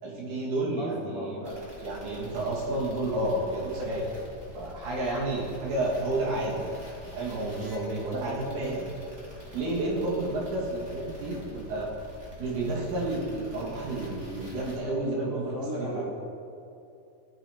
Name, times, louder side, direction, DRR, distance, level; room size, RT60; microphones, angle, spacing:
voice 1, 0.0-1.4 1.8-4.1 4.5-6.7 7.1-8.9 9.5-11.9 12.4-16.0, right 2 dB, 65° right, -4 dB, 2.9 m, -30 dB
voice 2, 0.8-1.7 15.3-16.0, equal, 70° left, -6 dB, 1.1 m, -36 dB
sound 1, 1.4-14.8, left 2 dB, 30° right, 0.4 m, -46 dB
13.5 x 4.7 x 4.1 m, 2.7 s
omnidirectional pair, 3.9 m